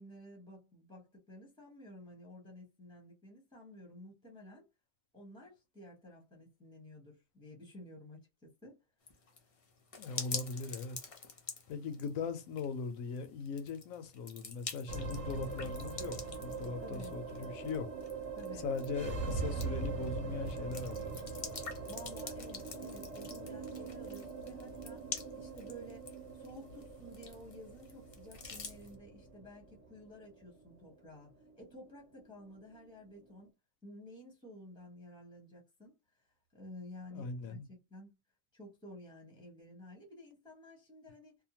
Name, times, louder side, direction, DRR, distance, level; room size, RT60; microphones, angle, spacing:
voice 1, 0.0-4.6 5.1-8.8 16.8-17.1 18.4-18.7 21.9-25.1 25.3-26.1 26.3-33.5 33.8-37.6 37.9-38.2 38.5-41.4, left 1 dB, 5° left, 0.7 m, -53 dB
sound 1, 9.1-28.9, left 4 dB, 55° left, 0.3 m, -47 dB
voice 2, 10.0-11.0 11.7-17.9 18.6-21.4 37.1-37.7, left 5 dB, 80° left, 1.0 m, -40 dB
sound 2, 14.9-33.4, right 4 dB, 60° right, 1.1 m, -42 dB
2.7 x 2.1 x 2.8 m
omnidirectional pair, 1.4 m